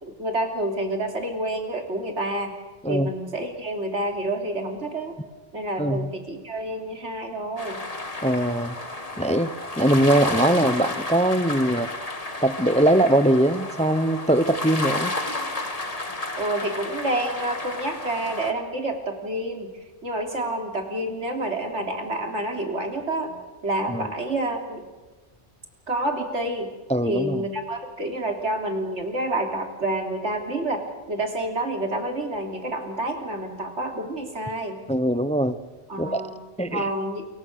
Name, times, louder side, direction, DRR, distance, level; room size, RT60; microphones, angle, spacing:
voice 1, 0.0-2.5 2.9-5.1 5.5-7.8 16.4-19.7 20.0-24.9 25.9-26.7 27.0-30.8 31.1-34.8 35.9-36.4 36.7-37.3, right 1 dB, 80° right, 3 dB, 3.4 m, -28 dB
voice 2, 5.8-6.1 8.2-8.8 9.2-11.9 12.4-15.1 23.9-24.1 26.9-27.4 34.9-35.6 36.0-36.2 36.6-36.9, right 1 dB, 5° left, 12 dB, 0.6 m, -21 dB
sound 1, 7.6-18.5, left 2 dB, 30° left, 2.0 m, -32 dB
29.0 x 23.0 x 6.6 m, 1.2 s
omnidirectional pair, 1.2 m